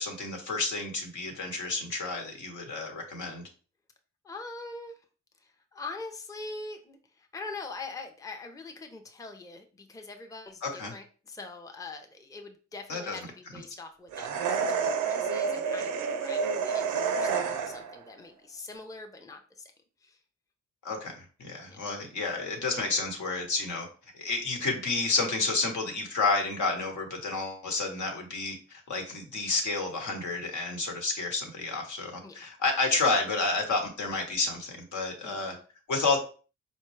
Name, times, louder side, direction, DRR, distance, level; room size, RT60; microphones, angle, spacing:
voice 1, 0.0-3.4 10.6-10.9 12.9-13.2 20.8-23.9 24.1-35.6 35.9-36.2, left 3 dB, 70° left, 2 dB, 1.1 m, -30 dB
voice 2, 4.2-4.9 5.7-19.7 20.0-20.2 21.7-21.8 32.2-32.3 35.2-35.6, left 3 dB, 10° left, 4 dB, 0.5 m, -43 dB
sound 1, 14.1-18.0, right 6 dB, 90° right, 0.5 m, -29 dB
4.3 x 2.2 x 3.1 m, 0.37 s
supercardioid pair, 55°, 31 cm